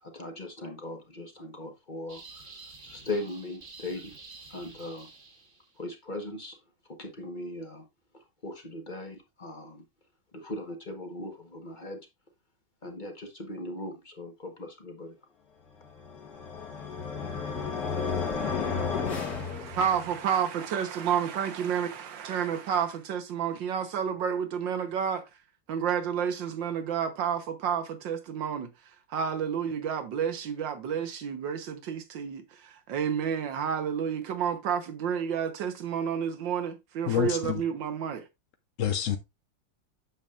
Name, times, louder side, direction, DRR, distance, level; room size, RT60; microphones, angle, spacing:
voice 1, 0.0-2.5 2.8-4.1 4.5-5.1 5.8-6.6 6.9-7.8 8.1-9.8 10.3-12.0 12.8-15.2, left 2 dB, 30° left, 1.1 m, -39 dB
sound 1, 2.1-5.8, right 3 dB, 40° right, 1.7 m, -49 dB
sound 2, 15.9-20.3, left 5 dB, 50° left, 2.4 m, -32 dB
voice 2, 19.3-25.2 25.7-28.7 29.1-38.2, right 8 dB, 75° right, 1.8 m, -30 dB
voice 3, 37.1-37.6 38.8-39.2, left 9 dB, 70° left, 0.7 m, -27 dB
8.8 x 7.0 x 2.4 m
omnidirectional pair, 2.1 m